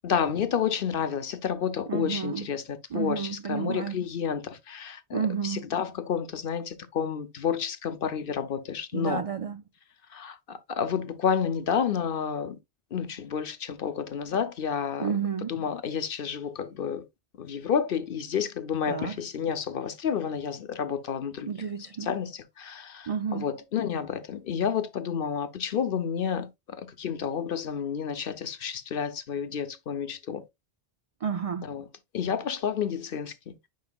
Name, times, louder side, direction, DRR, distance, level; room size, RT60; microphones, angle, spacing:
voice 1, 0.0-9.2 10.1-12.6 12.9-15.1 15.5-17.0 17.4-21.5 22.0-30.4 31.6-31.9 32.1-33.3, left 7 dB, 55° left, 0.9 m, -30 dB
voice 2, 1.9-2.5 2.9-4.0 5.1-5.7 8.9-9.6 15.0-15.6 18.9-19.2 21.4-22.1 23.1-23.5 31.2-31.7, right 7 dB, 55° right, 0.4 m, -31 dB
9.5 x 4.8 x 2.3 m
omnidirectional pair, 1.1 m